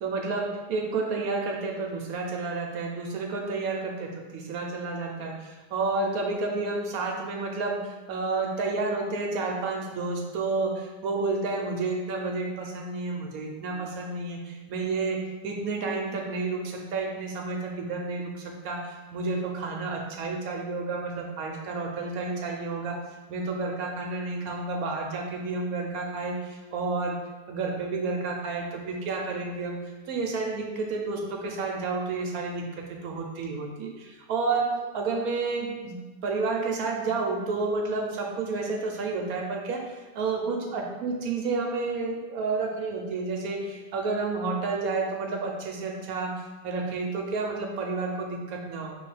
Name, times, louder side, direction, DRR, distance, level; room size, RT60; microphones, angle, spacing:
voice 1, 0.0-23.0 23.3-27.2 27.5-29.8 30.1-36.0 36.2-49.0, right 3 dB, 70° right, 1 dB, 0.9 m, -30 dB
5.5 x 2.9 x 3.2 m, 1.3 s
omnidirectional pair, 1.8 m